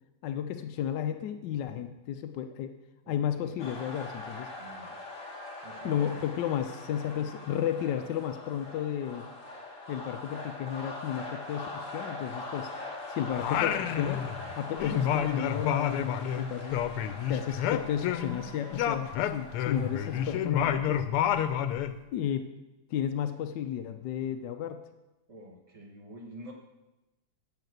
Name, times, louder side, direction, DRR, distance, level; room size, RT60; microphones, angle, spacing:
voice 1, 0.2-2.7 3.1-4.5 5.8-9.2 9.9-12.7 13.1-14.2 14.5-16.8 17.3-21.1 22.1-22.5 22.9-24.8, left 9 dB, 70° left, 7 dB, 1.0 m, -33 dB
voice 2, 3.0-3.6 4.6-5.0 5.6-6.2 25.3-26.5, right 1 dB, 45° right, 1 dB, 0.4 m, -47 dB
sound 1, 3.6-20.4, left 2 dB, 40° left, 1.8 m, -42 dB
Singing, 13.4-14.5 14.8-18.4 18.7-22.0, left 9 dB, 90° left, 1.6 m, -29 dB
10.5 x 5.7 x 7.9 m, 1.0 s
omnidirectional pair, 2.4 m